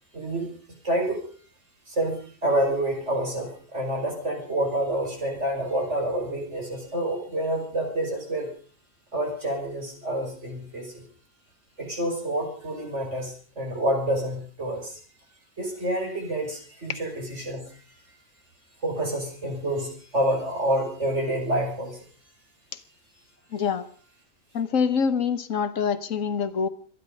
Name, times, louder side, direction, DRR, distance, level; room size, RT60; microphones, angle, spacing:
voice 1, 0.1-0.5 0.8-1.2 1.9-8.5 9.1-11.0 11.8-15.0 15.6-17.8 18.8-22.0, right 1 dB, 60° right, 1 dB, 5.6 m, -28 dB
voice 2, 23.5-23.9 24.5-26.7, left 6 dB, 75° left, 11 dB, 1.5 m, -25 dB
25.0 x 9.8 x 5.3 m, 0.43 s
omnidirectional pair, 1.4 m